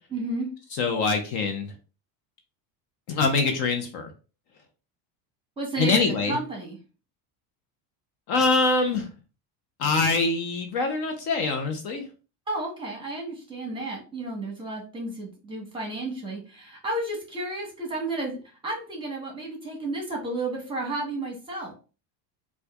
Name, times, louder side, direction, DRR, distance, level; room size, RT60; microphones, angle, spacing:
voice 1, 0.1-0.5 5.6-6.8 12.5-21.7, right 2 dB, 10° right, 0 dB, 1.2 m, -32 dB
voice 2, 0.7-1.7 3.1-4.1 5.8-6.4 8.3-9.1 9.8-12.0, left 3 dB, 50° left, 5 dB, 0.7 m, -24 dB
4.3 x 2.4 x 2.3 m, 0.34 s
supercardioid pair, 135°, 49 cm